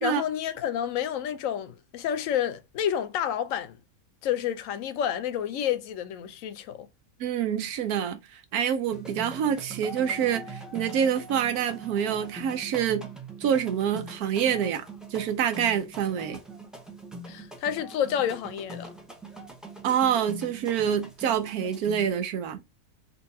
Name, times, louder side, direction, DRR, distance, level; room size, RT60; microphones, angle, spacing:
voice 1, 0.0-3.8 4.2-6.9 17.3-18.9, left 9 dB, 70° left, 0.9 m, -29 dB
voice 2, 7.2-13.1 13.4-14.8 15.1-16.4 19.8-22.6, right 8 dB, 80° right, 1.2 m, -27 dB
sound 1, 8.9-22.1, right 2 dB, ahead, 0.4 m, -42 dB
3.9 x 2.8 x 2.6 m
omnidirectional pair, 1.6 m